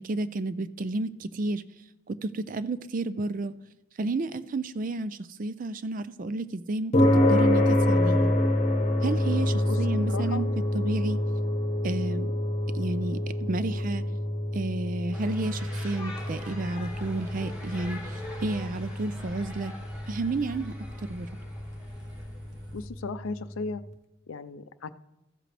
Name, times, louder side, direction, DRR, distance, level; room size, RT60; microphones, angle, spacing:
voice 1, 0.0-1.6 2.1-3.5 4.0-8.3 9.0-11.2 11.8-12.3 12.7-14.0 14.5-19.7 20.1-20.7 21.0-21.3, right 2 dB, 40° right, 14 dB, 0.4 m, -31 dB
sound 1, 6.9-23.4, left 1 dB, 35° left, 1.0 m, -27 dB
voice 2, 10.1-10.4 22.7-23.8 24.3-24.9, left 4 dB, 80° left, 14 dB, 0.5 m, -35 dB
sound 2, 15.1-22.7, left 1 dB, 5° right, 1.9 m, -44 dB
sound 3, 16.2-22.9, equal, 20° right, 1.0 m, -49 dB
14.0 x 7.6 x 3.3 m, 0.96 s
head